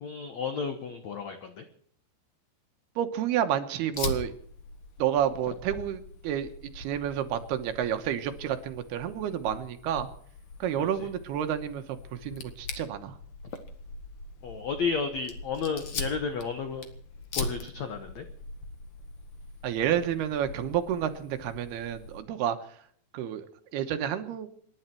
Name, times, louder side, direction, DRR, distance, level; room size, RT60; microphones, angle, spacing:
voice 1, 0.0-1.6 10.8-11.1 14.4-16.9 17.3-18.2, left 5 dB, 75° left, 7 dB, 1.6 m, -32 dB
voice 2, 3.0-4.3 5.0-10.1 10.6-13.2 19.6-22.8 23.1-24.5, right 10 dB, 70° right, 8 dB, 2.9 m, -30 dB
Fire, 3.9-22.2, left 3 dB, 55° left, 1.6 m, -41 dB
27.5 x 11.0 x 4.5 m, 0.62 s
omnidirectional pair, 5.0 m